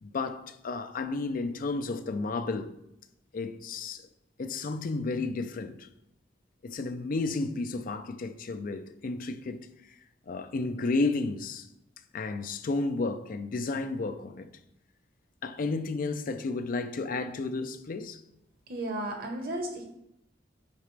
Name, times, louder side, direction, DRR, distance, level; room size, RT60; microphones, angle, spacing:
voice 1, 0.0-2.7 3.3-4.0 4.4-5.9 6.6-9.6 10.3-11.7 12.1-14.5 15.4-18.2, left 3 dB, 50° left, 0.5 m, -32 dB
voice 2, 18.7-19.8, right 1 dB, 55° right, 1.2 m, -34 dB
8.0 x 4.9 x 3.3 m
head